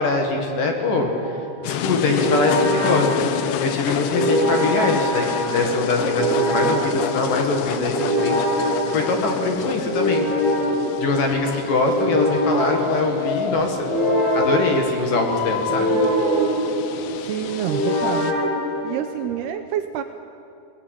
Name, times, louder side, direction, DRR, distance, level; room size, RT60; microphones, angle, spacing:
voice 1, 0.0-10.3 11.0-13.9 14.3-16.0, left 3 dB, 55° left, 3 dB, 3.0 m, -23 dB
sound 1, 1.0-19.4, equal, 10° right, 5.3 m, -24 dB
sound 2, 1.6-18.3, left 8 dB, 75° left, 3.1 m, -29 dB
voice 2, 17.2-18.3 18.8-20.0, right 11 dB, 75° right, 8 dB, 2.5 m, -27 dB
23.0 x 18.0 x 9.9 m, 2.6 s
omnidirectional pair, 5.3 m